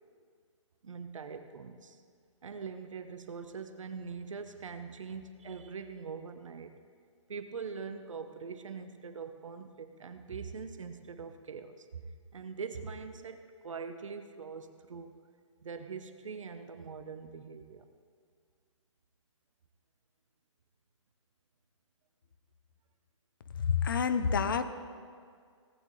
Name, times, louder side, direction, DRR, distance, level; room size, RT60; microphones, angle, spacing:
voice 1, 0.8-2.0 2.4-6.8 7.3-12.0 12.3-15.2 15.6-17.9, right 5 dB, 80° right, 8 dB, 0.9 m, -43 dB
voice 2, 23.6-24.7, left 6 dB, 45° left, 10 dB, 0.6 m, -28 dB
18.0 x 9.1 x 3.2 m, 2.1 s
hypercardioid pair, 180°, 16 cm